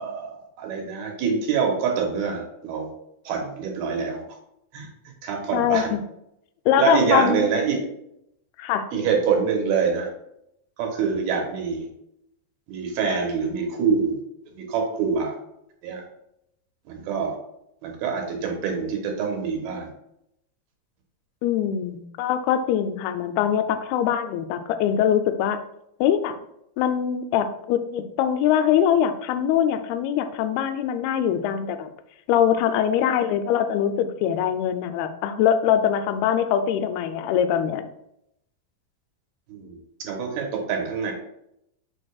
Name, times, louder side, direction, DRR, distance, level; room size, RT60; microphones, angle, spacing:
voice 1, 0.0-2.9 3.3-4.2 4.7-4.9 5.2-5.9 6.7-7.8 8.9-10.1 10.8-11.9 12.7-14.2 14.5-15.4 15.8-16.0 16.9-17.4 17.8-19.9 39.5-41.1, right 5 dB, 75° right, 1 dB, 2.8 m, -25 dB
voice 2, 5.5-6.0 6.7-7.5 8.6-8.9 21.4-25.6 26.0-26.4 26.8-31.9 32.3-37.9, left 9 dB, 90° left, 9 dB, 2.5 m, -23 dB
6.5 x 6.1 x 2.3 m, 0.79 s
omnidirectional pair, 4.4 m